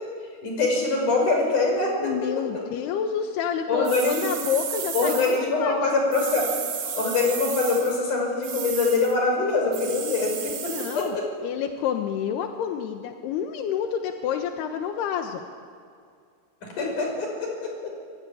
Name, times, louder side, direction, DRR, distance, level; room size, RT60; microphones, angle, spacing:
voice 1, 0.4-2.1 3.7-4.3 4.9-6.5 6.8-11.2 16.6-17.9, left 3 dB, 50° left, 1 dB, 7.3 m, -24 dB
voice 2, 2.0-5.9 10.6-11.2 11.4-15.4, left 8 dB, 85° left, 5 dB, 3.2 m, -29 dB
sound 1, 3.9-5.4 6.1-8.0 8.4-9.1 9.7-11.1, right 7 dB, 70° right, 4.1 m, -33 dB
25.5 x 22.5 x 10.0 m, 2.3 s
omnidirectional pair, 4.6 m